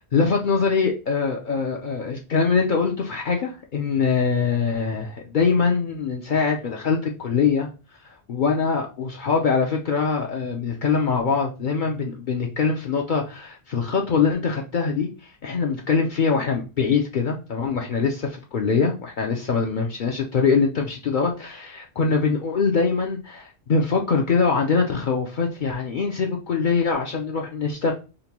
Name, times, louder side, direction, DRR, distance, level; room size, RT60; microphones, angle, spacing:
voice 1, 0.1-7.7 8.0-15.1 15.4-27.9, left 5 dB, 55° left, 0 dB, 0.6 m, -23 dB
5.1 x 2.1 x 2.9 m, 0.31 s
omnidirectional pair, 1.1 m